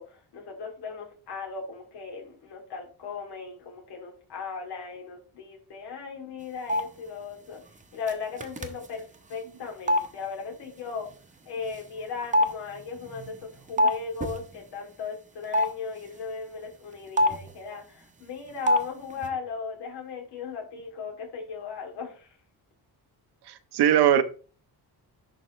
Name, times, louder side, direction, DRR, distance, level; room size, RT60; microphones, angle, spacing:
voice 1, 0.0-7.6 7.9-9.0 9.3-11.1 11.5-22.4, left 5 dB, 80° left, 0 dB, 2.7 m, -37 dB
sound 1, 6.7-6.8 8.1-8.2 8.4-8.8 9.9-10.0 11.7-11.8 12.3-13.9 14.2-14.4 15.5-15.7 17.2-17.5 18.7-18.8 19.1-19.3, left 1 dB, 20° right, 0.8 m, -23 dB
voice 2, 23.5-24.2, right 10 dB, 80° right, 12 dB, 0.8 m, -20 dB
11.0 x 4.3 x 3.1 m, 0.38 s
cardioid pair, 145°, 39 cm